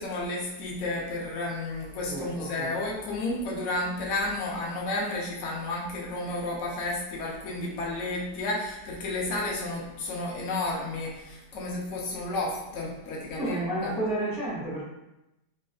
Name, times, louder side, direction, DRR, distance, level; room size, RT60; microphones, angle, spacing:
voice 1, 0.0-13.9, left 2 dB, 60° left, -3 dB, 0.8 m, -32 dB
voice 2, 2.1-2.7 13.4-14.8, right 1 dB, 30° left, -10 dB, 1.3 m, -31 dB
3.2 x 2.5 x 2.3 m, 0.92 s
omnidirectional pair, 1.9 m